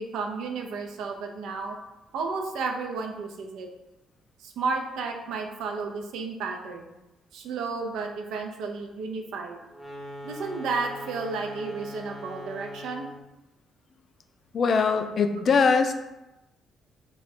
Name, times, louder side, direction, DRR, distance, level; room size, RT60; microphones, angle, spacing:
voice 1, 0.0-1.8 2.1-3.7 4.4-6.9 7.3-9.6 10.2-13.0, right 4 dB, 85° right, 3 dB, 0.5 m, -32 dB
sound 1, 9.7-13.3, equal, 5° left, 0.7 m, -41 dB
voice 2, 14.5-15.9, left 5 dB, 55° left, 7 dB, 0.4 m, -22 dB
3.1 x 2.3 x 4.2 m, 0.97 s
cardioid pair, 90°, 0 cm